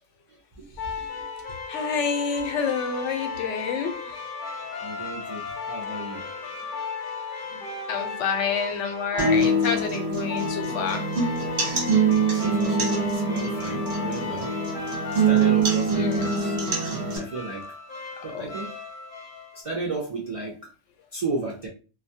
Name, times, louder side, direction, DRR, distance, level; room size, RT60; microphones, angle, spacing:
voice 1, 0.3-0.7 1.0-1.3 4.8-6.3 12.1-14.5 15.3-16.6 17.1-17.7 18.2-18.8 19.5-20.7 21.1-21.7, right 3 dB, 55° right, 0.3 m, -34 dB
sound 1, 0.8-19.6, left 5 dB, 60° left, 0.6 m, -36 dB
voice 2, 1.7-4.2 7.5-7.6 7.9-11.0 15.9-16.4 18.3-18.5, left 5 dB, 85° left, 0.9 m, -28 dB
sound 2, 9.2-17.2, right 3 dB, 40° right, 0.9 m, -24 dB
2.3 x 2.1 x 2.6 m
omnidirectional pair, 1.2 m